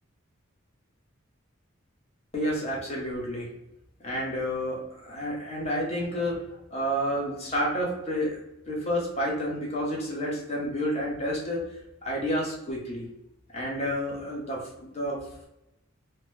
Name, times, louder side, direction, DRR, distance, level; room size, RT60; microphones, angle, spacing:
voice 1, 2.3-3.5 4.0-6.4 6.7-8.4 8.7-11.7 12.0-13.0 13.5-15.2, equal, 30° left, -3 dB, 0.8 m, -30 dB
2.9 x 2.1 x 3.2 m, 0.87 s
head